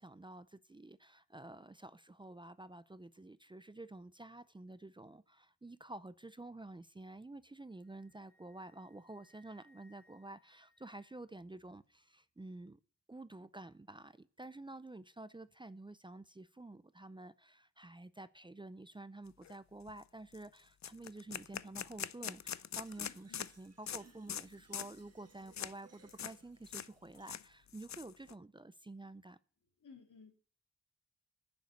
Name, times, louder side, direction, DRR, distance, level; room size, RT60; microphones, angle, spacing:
voice 1, 0.0-12.8 13.1-29.4, right 2 dB, 15° right, 0.5 m, -50 dB
Wind instrument woodwind instrument, 7.4-11.4, left 1 dB, 45° left, 3.0 m, -71 dB
sound 1, 19.4-19.6 19.9-20.0 20.3-20.5 20.8-23.5 23.9-24.0 24.3-24.5 24.7-25.0 25.5-25.7 26.1-26.4 26.6-26.9 27.1-28.3, left 9 dB, 65° left, 0.5 m, -43 dB
Fill (with liquid), 22.7-27.7, right 4 dB, 55° right, 1.6 m, -66 dB
voice 2, 23.0-23.5 29.8-30.3, left 5 dB, 85° left, 3.0 m, -57 dB
11.0 x 6.6 x 8.2 m
wide cardioid pair, 145°, 30 cm